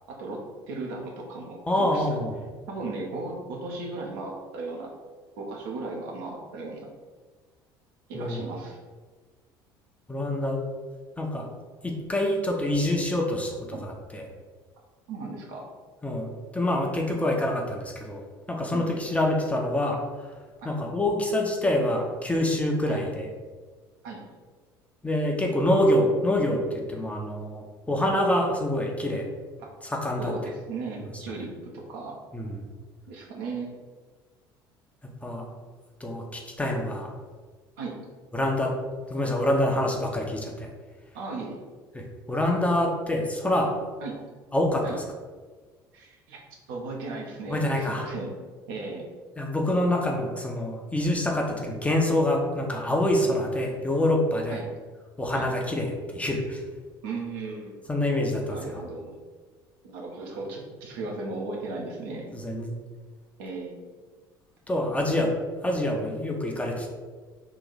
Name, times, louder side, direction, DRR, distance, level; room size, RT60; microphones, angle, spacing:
voice 1, 0.1-2.1 2.7-4.9 5.4-6.9 8.1-8.8 13.7-13.9 15.1-15.7 18.7-19.0 20.6-20.8 22.9-23.0 24.0-24.2 29.6-29.7 30.2-32.2 33.1-33.7 37.8-38.0 41.1-41.6 44.0-44.2 44.8-45.0 45.9-46.4 46.7-48.3 48.7-49.1 54.5-54.7 55.3-55.5 57.0-57.7 58.5-59.1 59.8-62.3 63.4-63.8, right 3 dB, 60° right, -1 dB, 0.7 m, -36 dB
voice 2, 1.7-2.4 8.1-8.4 10.1-10.6 11.2-11.5 11.8-14.3 16.0-18.2 18.5-20.3 20.6-23.3 25.0-29.3 29.8-30.3 32.3-32.6 35.2-35.5 36.0-37.1 38.3-38.7 39.1-40.7 41.9-43.7 44.5-45.0 47.5-48.0 49.4-54.6 55.2-56.6 57.9-58.8 62.3-62.7 64.7-65.3 65.6-66.9, left 1 dB, 10° left, 0 dB, 0.6 m, -26 dB
3.1 x 2.5 x 3.9 m, 1.4 s
figure-of-eight pair, 60°, 12 cm